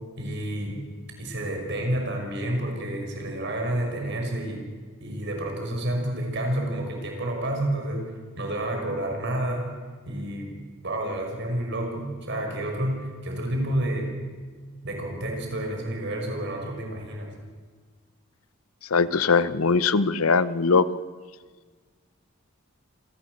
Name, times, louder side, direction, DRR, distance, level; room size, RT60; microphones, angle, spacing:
voice 1, 0.2-0.8 1.2-4.7 5.0-9.7 10.1-14.2 14.8-17.3, right 1 dB, 55° right, 2 dB, 5.8 m, -29 dB
voice 2, 18.9-20.8, left 4 dB, 85° left, 16 dB, 0.9 m, -21 dB
27.0 x 16.5 x 8.1 m, 1.5 s
head